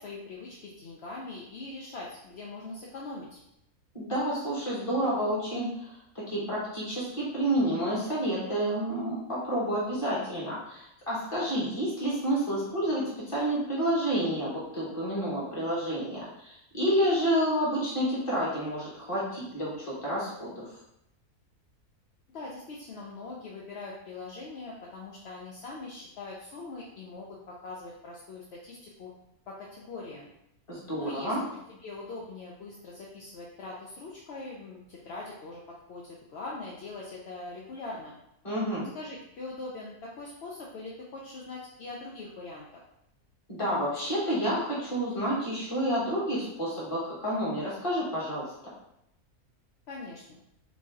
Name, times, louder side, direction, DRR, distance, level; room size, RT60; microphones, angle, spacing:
voice 1, 0.0-3.4 22.3-29.1 29.5-30.3 31.0-31.4 31.7-35.6 35.9-38.2 38.9-42.8 49.9-50.4, left 3 dB, 65° left, -4 dB, 0.6 m, -42 dB
voice 2, 3.9-20.7 30.7-31.4 38.4-38.9 43.5-48.4, equal, 20° left, -7 dB, 1.2 m, -29 dB
3.0 x 2.7 x 3.5 m, 0.81 s
omnidirectional pair, 1.6 m